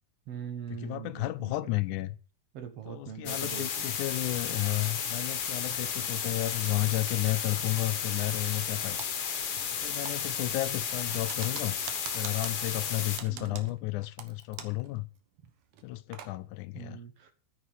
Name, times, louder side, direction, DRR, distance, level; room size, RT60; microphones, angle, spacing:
voice 1, 0.3-1.8 2.5-3.9 13.3-13.8 16.7-17.3, right 8 dB, 55° right, 2.4 m, -42 dB
voice 2, 0.8-2.2 2.9-9.0 9.7-11.8 12.1-15.1 15.8-17.0, left 19 dB, 85° left, 2.2 m, -32 dB
sound 1, 3.3-13.2, left 7 dB, 55° left, 2.4 m, -33 dB
Typing, 9.0-9.8 10.1-14.9 15.2-15.3 15.7-16.3, right 9 dB, 80° right, 2.8 m, -45 dB
9.7 x 8.5 x 8.1 m
omnidirectional pair, 3.5 m